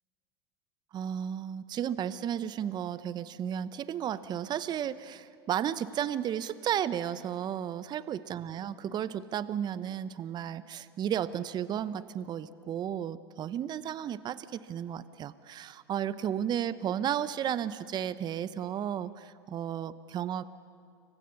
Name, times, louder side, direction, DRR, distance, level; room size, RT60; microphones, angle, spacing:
voice 1, 0.9-20.4, right 9 dB, 35° right, 15 dB, 0.9 m, -33 dB
30.0 x 24.0 x 7.0 m, 2.4 s
hypercardioid pair, 90°, 13 cm